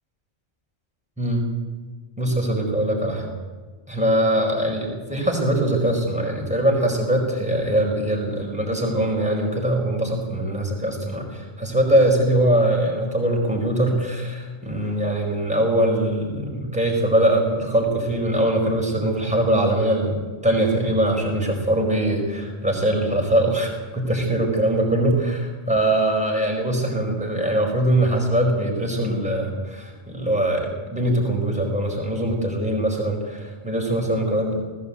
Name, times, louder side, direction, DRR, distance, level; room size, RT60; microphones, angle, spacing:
voice 1, 1.2-1.5 2.2-3.3 3.9-34.5, right 1 dB, 5° right, 0 dB, 4.7 m, -22 dB
19.0 x 16.0 x 8.4 m, 1.5 s
omnidirectional pair, 1.2 m